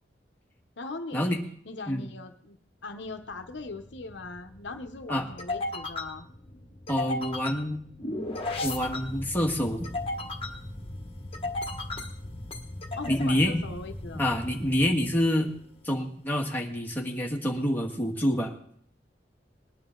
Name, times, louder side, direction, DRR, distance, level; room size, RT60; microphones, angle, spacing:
voice 1, 0.8-1.4 1.7-2.6 2.8-6.3 13.0-14.2, left 3 dB, 70° left, 6 dB, 0.9 m, -39 dB
sound 1, 3.1-15.8, left 2 dB, 30° left, 1.5 m, -36 dB
voice 2, 6.9-7.8 8.6-9.9 13.1-13.6 14.1-15.5 15.8-18.6, equal, 10° left, 0 dB, 1.7 m, -27 dB
20.5 x 10.0 x 3.8 m, 0.62 s
head